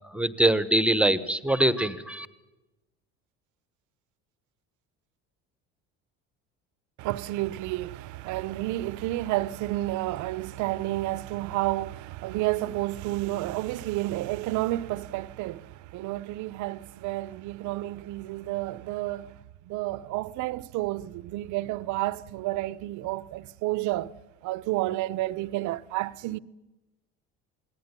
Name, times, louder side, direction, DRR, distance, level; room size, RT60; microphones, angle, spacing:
voice 1, 0.1-2.3, right 1 dB, 5° right, 1.2 m, -23 dB
voice 2, 7.0-19.4 19.7-24.1 24.4-26.4, right 17 dB, 70° right, 0.9 m, -30 dB
27.5 x 19.5 x 9.9 m
cardioid pair, 135°, 31 cm